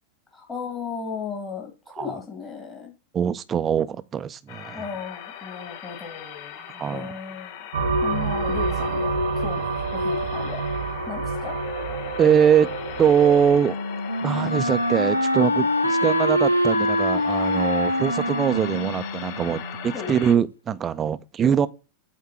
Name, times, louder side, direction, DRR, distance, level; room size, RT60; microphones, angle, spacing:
voice 1, 0.3-2.9 4.7-7.6 8.0-10.6 11.1-11.6 19.9-20.1, left 6 dB, 20° left, 1.6 m, -35 dB
voice 2, 3.1-4.8 6.7-7.1 12.2-12.7 13.0-13.8 14.2-21.7, right 8 dB, 25° right, 0.6 m, -22 dB
sound 1, 4.5-20.3, left 9 dB, 50° left, 0.9 m, -39 dB
sound 2, 7.7-13.5, right 3 dB, 65° right, 1.2 m, -27 dB
Wind instrument woodwind instrument, 13.1-20.0, equal, 85° left, 0.5 m, -24 dB
8.5 x 3.7 x 4.4 m
figure-of-eight pair, 90°, 0 cm